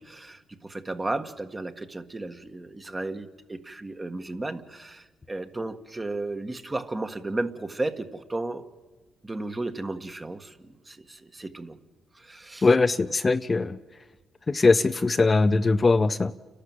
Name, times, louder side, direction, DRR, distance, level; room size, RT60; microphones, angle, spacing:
voice 1, 0.0-8.6 9.2-11.8 12.1-12.7, right 2 dB, 25° right, 6 dB, 1.6 m, -34 dB
voice 2, 12.6-13.8 14.5-16.3, left 3 dB, 30° left, 10 dB, 0.7 m, -21 dB
30.0 x 12.0 x 7.6 m, 1.2 s
supercardioid pair, 65°, 0 cm